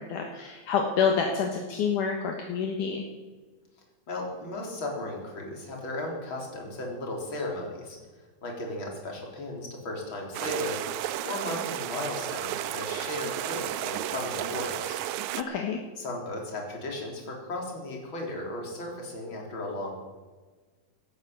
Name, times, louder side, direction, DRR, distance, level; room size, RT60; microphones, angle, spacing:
voice 1, 0.0-3.0 15.4-15.8, left 6 dB, 65° left, 2 dB, 2.8 m, -28 dB
voice 2, 4.1-8.0 8.4-15.0 16.0-20.0, left 1 dB, 35° left, 0 dB, 4.1 m, -35 dB
sound 1, 10.3-15.4, right 13 dB, 80° right, 1.7 m, -33 dB
17.5 x 10.5 x 7.8 m, 1.4 s
omnidirectional pair, 4.0 m